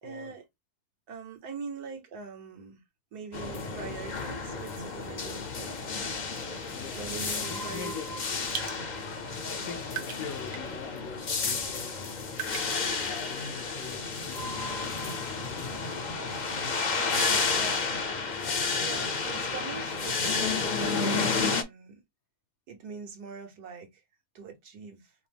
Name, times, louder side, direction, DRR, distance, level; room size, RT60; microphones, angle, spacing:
voice 1, 0.0-0.5 1.1-2.8 3.1-5.8 6.9-8.2 8.5-8.7 16.9-18.0 18.8-22.0 22.7-24.0 24.3-25.1, right 5 dB, 80° right, 1.6 m, -43 dB
sound 1, 3.3-21.6, left 4 dB, 45° left, 0.6 m, -31 dB
voice 2, 6.7-7.1 7.3-8.2 9.5-12.3 13.1-16.8 17.2-17.3 17.5-17.8, left 6 dB, 70° left, 1.0 m, -43 dB
sound 2, 7.9-8.1 8.5-8.8 9.5-9.6 9.9-10.7 11.0-11.1 12.3-12.8, right 8 dB, 60° right, 1.3 m, -37 dB
4.9 x 2.1 x 3.3 m
omnidirectional pair, 1.6 m